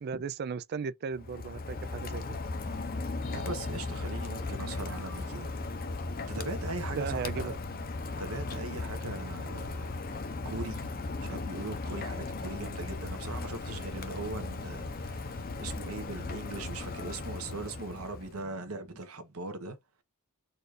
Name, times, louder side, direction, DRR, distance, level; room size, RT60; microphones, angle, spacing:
voice 1, 0.0-2.4 6.9-7.5, right 5 dB, 45° right, 0.3 m, -36 dB
Rain, 1.1-18.4, left 3 dB, 40° left, 0.7 m, -37 dB
sound 1, 2.4-19.0, right 2 dB, 25° right, 0.8 m, -54 dB
sound 2, 3.2-7.7 7.9-8.0, left 3 dB, 70° left, 1.5 m, -56 dB
voice 2, 3.3-5.5 6.3-7.6 8.2-9.9 10.4-10.9 11.2-19.8, right 3 dB, 70° right, 1.1 m, -40 dB
4.2 x 2.5 x 4.8 m
head